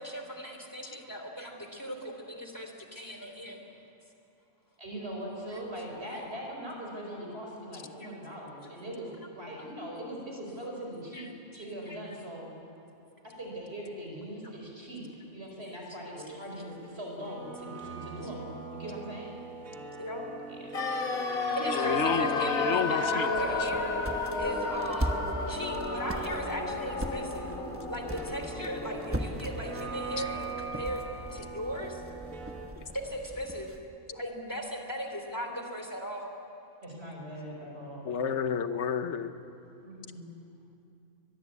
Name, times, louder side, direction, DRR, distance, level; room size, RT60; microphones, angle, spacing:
voice 1, 0.0-3.6 5.5-5.6 6.1-6.2 8.0-8.1 11.1-12.0 14.4-14.5 20.0-20.2 21.5-23.9 24.3-25.2 25.5-27.5 27.9-31.0 31.3-32.0 32.9-33.7 34.1-36.3, equal, 15° left, 3 dB, 3.0 m, -38 dB
voice 2, 4.8-11.2 11.5-12.5 13.4-19.3 20.5-20.9 36.8-38.1 39.8-40.2, right 1 dB, 50° right, -1 dB, 5.2 m, -41 dB
sound 1, 16.5-32.7, right 4 dB, 80° right, 2.4 m, -43 dB
sound 2, 20.7-30.7 30.9-31.0, left 3 dB, 85° left, 2.2 m, -33 dB
voice 3, 21.7-23.8 30.2-30.3 32.8-32.9 38.0-39.3, left 6 dB, 60° left, 10 dB, 1.3 m, -31 dB
sound 3, 23.3-33.9, right 1 dB, 10° right, 1.1 m, -40 dB
23.5 x 21.0 x 8.4 m, 2.6 s
omnidirectional pair, 1.4 m